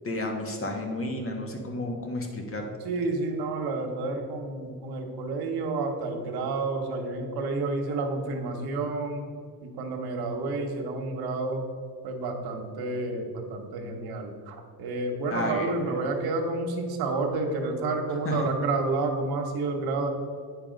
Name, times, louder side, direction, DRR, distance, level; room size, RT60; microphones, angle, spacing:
voice 1, 0.0-2.7 15.3-16.0 18.2-18.5, left 1 dB, 35° left, 2 dB, 1.5 m, -32 dB
voice 2, 2.8-9.3 9.6-11.6 12.0-20.1, right 3 dB, 75° right, 3 dB, 1.3 m, -30 dB
8.9 x 4.8 x 5.1 m, 2.1 s
cardioid pair, 100°, 38 cm